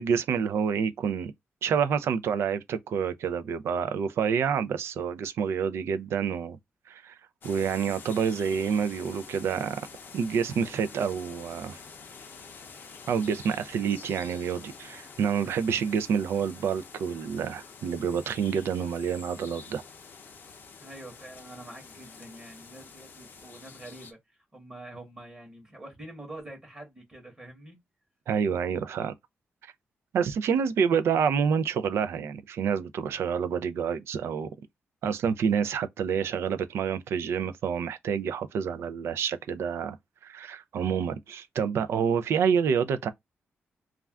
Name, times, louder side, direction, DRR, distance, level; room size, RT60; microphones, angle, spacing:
voice 1, 0.0-1.3 1.6-6.6 6.9-7.2 7.4-9.9 10.1-11.8 13.1-19.8 28.3-29.1 30.1-34.5 35.0-40.0 40.2-43.1, right 7 dB, 85° right, 0.4 m, -28 dB
sound 1, 7.4-24.1, left 5 dB, 50° left, 0.5 m, -47 dB
voice 2, 20.8-24.2 24.5-27.8, right 1 dB, 20° right, 1.0 m, -45 dB
2.4 x 2.2 x 3.3 m
wide cardioid pair, 155°, 4 cm